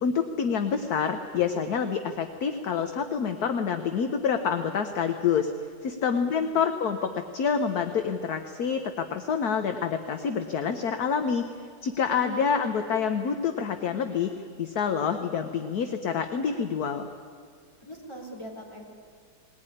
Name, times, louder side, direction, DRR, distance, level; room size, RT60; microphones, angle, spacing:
voice 1, 0.0-5.5 5.8-11.4 11.8-14.3 14.6-17.1, left 6 dB, 60° left, 7 dB, 1.4 m, -27 dB
voice 2, 6.0-6.6 12.2-12.5 17.8-18.8, equal, 15° left, -1 dB, 4.1 m, -42 dB
20.5 x 18.5 x 10.0 m, 2.2 s
omnidirectional pair, 2.0 m